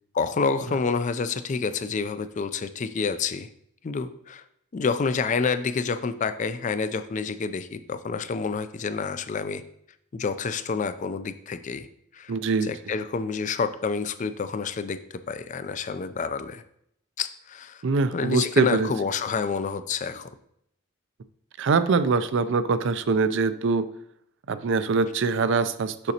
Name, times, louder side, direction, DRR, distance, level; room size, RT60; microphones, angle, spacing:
voice 1, 0.1-3.5 3.8-4.4 4.7-9.6 10.1-11.9 12.1-12.3 12.6-15.0 15.3-16.6 17.2-17.8 18.1-20.3, left 5 dB, 35° left, 12 dB, 0.4 m, -28 dB
voice 2, 12.3-12.7 17.8-18.9 21.6-23.9 24.5-26.1, right 4 dB, 60° right, 13 dB, 0.4 m, -23 dB
6.6 x 6.1 x 2.8 m, 0.72 s
head